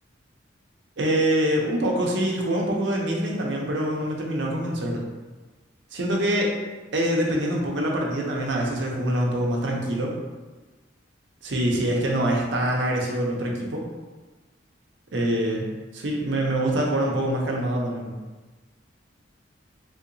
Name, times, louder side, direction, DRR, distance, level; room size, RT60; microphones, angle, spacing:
voice 1, 1.0-5.0 5.9-6.6 6.9-10.1 11.4-13.8 15.1-15.7 15.9-18.1, right 1 dB, 60° right, -1 dB, 0.6 m, -25 dB
3.5 x 2.8 x 2.6 m, 1.3 s
head